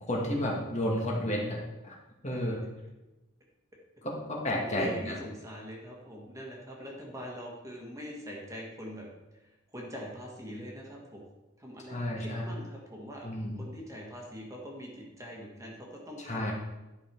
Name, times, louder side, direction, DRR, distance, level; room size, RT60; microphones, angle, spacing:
voice 1, 0.1-1.6 1.8-2.0 2.2-2.6 4.0-5.1 11.9-12.5 13.2-13.6 16.2-16.5, left 1 dB, 35° left, -2 dB, 1.8 m, -31 dB
voice 2, 4.6-9.1 9.4-11.2 11.6-13.2 13.6-16.5, equal, 15° right, -2 dB, 1.7 m, -43 dB
11.0 x 5.5 x 4.6 m, 1.0 s
head